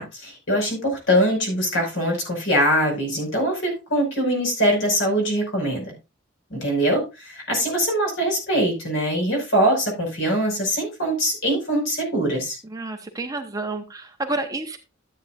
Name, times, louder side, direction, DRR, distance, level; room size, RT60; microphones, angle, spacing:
voice 1, 0.0-5.9 6.5-12.6, equal, 70° left, 1 dB, 5.5 m, -23 dB
voice 2, 12.7-14.8, right 2 dB, 20° right, 5 dB, 1.0 m, -30 dB
13.5 x 8.5 x 2.5 m, 0.26 s
head